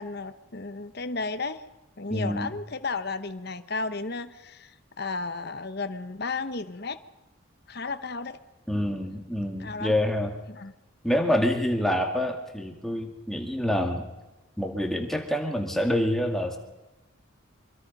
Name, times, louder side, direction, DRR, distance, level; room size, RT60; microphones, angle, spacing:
voice 1, 0.0-1.6 2.0-7.0 7.7-8.4 9.6-10.0 10.5-10.7, left 3 dB, 50° left, 10 dB, 1.0 m, -33 dB
voice 2, 2.1-2.5 8.7-10.3 11.0-14.1 14.6-16.6, left 1 dB, ahead, 2 dB, 2.2 m, -27 dB
25.0 x 23.5 x 5.5 m, 1.0 s
head